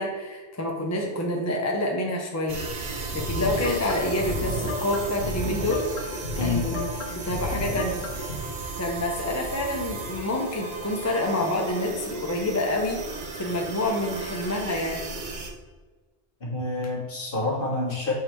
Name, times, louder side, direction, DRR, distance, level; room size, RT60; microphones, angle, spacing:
voice 1, 0.0-2.6 3.1-5.9 6.4-8.0 8.8-13.0 13.3-15.0, left 1 dB, 20° left, 0 dB, 0.5 m, -27 dB
sound 1, 2.5-15.5, right 3 dB, 50° right, 0.8 m, -35 dB
sound 2, 3.2-8.4, left 2 dB, 70° left, 1.2 m, -33 dB
voice 2, 16.4-18.1, left 3 dB, 50° left, -4 dB, 1.7 m, -27 dB
6.5 x 3.4 x 4.6 m, 1.3 s
omnidirectional pair, 1.2 m